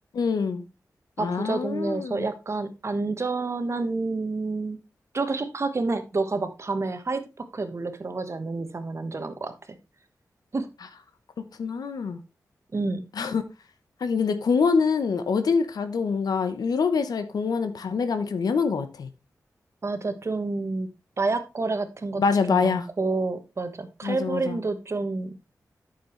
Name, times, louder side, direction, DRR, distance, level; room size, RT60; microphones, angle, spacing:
voice 1, 0.1-0.6 1.2-2.3 11.6-12.2 13.2-13.4 14.0-19.1 22.2-22.9 24.0-24.6, left 5 dB, 85° left, 0.9 m, -25 dB
voice 2, 1.2-4.8 5.1-7.2 7.5-9.5 10.5-10.7 12.7-13.0 19.8-20.9 21.2-22.2 22.5-25.4, right 3 dB, 45° right, 1.3 m, -29 dB
9.2 x 6.8 x 3.2 m
cardioid pair, 65°, 6 cm